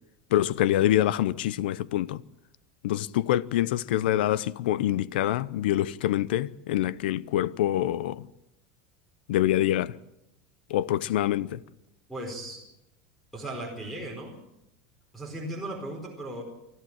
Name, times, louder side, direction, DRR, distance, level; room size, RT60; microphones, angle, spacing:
voice 1, 0.3-2.2 2.8-8.3 9.3-9.9 10.7-11.6, left 13 dB, 90° left, 0.7 m, -25 dB
voice 2, 12.1-12.6 13.3-14.4 15.1-16.4, right 1 dB, ahead, 4.7 m, -36 dB
24.5 x 14.0 x 9.0 m
supercardioid pair, 140°, 5 cm